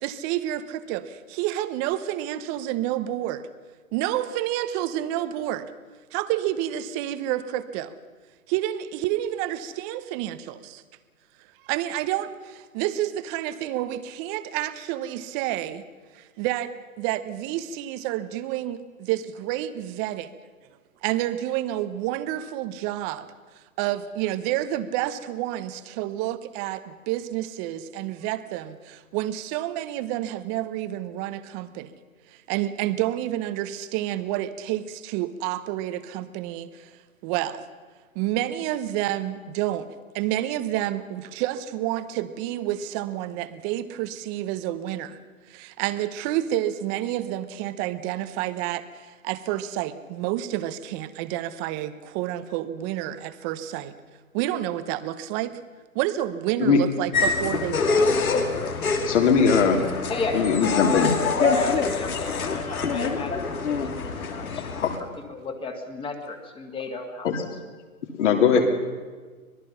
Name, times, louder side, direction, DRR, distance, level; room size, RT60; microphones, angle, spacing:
voice 1, 0.0-3.4 3.9-5.7 6.1-7.9 8.5-10.8 11.6-15.8 16.1-16.7 17.0-20.3 21.0-23.3 23.8-31.9 32.3-36.9 37.2-37.6 38.1-39.9 40.1-45.2 45.5-54.0 54.3-55.6 55.9-58.1, right 13 dB, 25° right, 12 dB, 1.0 m, -29 dB
sound 1, 57.1-65.0, left 4 dB, 75° left, 2.9 m, -25 dB
voice 2, 59.0-59.8 60.3-61.1 64.8-64.9 67.2-67.4 68.2-68.7, left 6 dB, 55° left, 3 dB, 3.6 m, -19 dB
voice 3, 60.1-60.5 60.8-61.0 61.5-67.5 68.5-68.7, left 3 dB, 10° left, 5 dB, 2.0 m, -35 dB
25.5 x 19.5 x 5.8 m, 1.4 s
hypercardioid pair, 135°, 42 cm